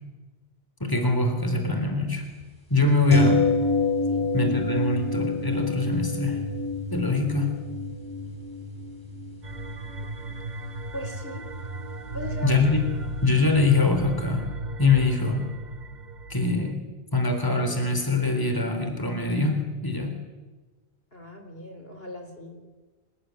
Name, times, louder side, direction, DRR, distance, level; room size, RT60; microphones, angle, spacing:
voice 1, 0.8-2.2 2.7-3.4 4.3-6.4 6.9-7.6 12.4-12.8 13.2-14.5 14.8-15.4 16.3-16.8 17.1-20.1, left 3 dB, 20° left, 5 dB, 3.8 m, -23 dB
sound 1, 3.1-13.0 13.3-13.4, left 2 dB, 20° right, 5.3 m, -29 dB
sound 2, 9.4-16.7, right 1 dB, 45° right, 1.1 m, -35 dB
voice 2, 10.9-11.4 12.1-12.6 21.1-22.6, left 1 dB, 60° left, 5 dB, 4.3 m, -38 dB
27.0 x 19.5 x 9.6 m, 1.2 s
omnidirectional pair, 1.1 m